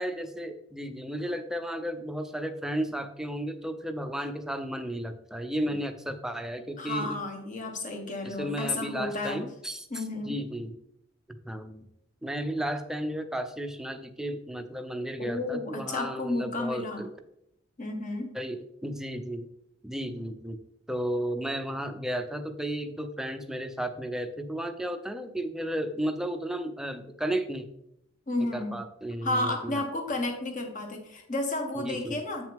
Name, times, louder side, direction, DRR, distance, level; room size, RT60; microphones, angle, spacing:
voice 1, 0.0-7.2 8.2-10.7 11.4-11.9 12.2-17.1 18.3-19.5 19.8-20.6 20.9-27.7 28.5-29.8 31.8-32.2, right 1 dB, 5° right, 7 dB, 0.6 m, -33 dB
voice 2, 6.8-9.4 9.9-10.4 15.2-17.0 17.8-18.3 28.3-28.8 29.2-32.5, left 2 dB, 40° left, 3 dB, 1.5 m, -32 dB
8.3 x 6.2 x 3.5 m, 0.78 s
head